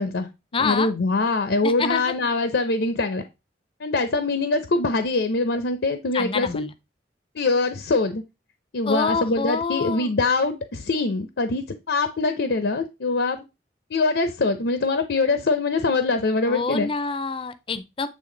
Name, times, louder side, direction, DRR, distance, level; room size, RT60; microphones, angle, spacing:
voice 1, 0.0-3.2 3.8-6.6 7.4-8.2 8.7-13.4 13.9-16.9, left 3 dB, 80° left, 0.6 m, -23 dB
voice 2, 0.5-0.9 1.6-2.0 6.1-6.7 8.8-10.1 16.5-18.1, left 4 dB, 30° left, 0.5 m, -26 dB
8.4 x 3.3 x 3.8 m
head